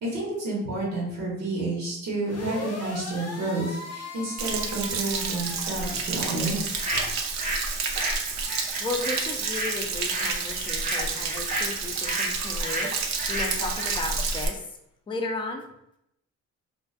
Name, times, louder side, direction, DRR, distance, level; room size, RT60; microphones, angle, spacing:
voice 1, 0.0-7.0, right 2 dB, 85° right, -4 dB, 0.8 m, -30 dB
sound 1, 2.2-6.0, left 3 dB, 55° left, 0.6 m, -39 dB
Stream / Splash splatter / Trickle dribble, 4.4-14.5, right 5 dB, 65° right, 0.5 m, -30 dB
sound 2, 6.8-7.7 7.9-14.0, right 1 dB, 25° right, 0.7 m, -32 dB
voice 2, 8.8-14.7 15.1-15.7, left 3 dB, 15° left, 3 dB, 0.4 m, -34 dB
2.4 x 2.1 x 2.4 m, 0.78 s
cardioid pair, 90°, 30 cm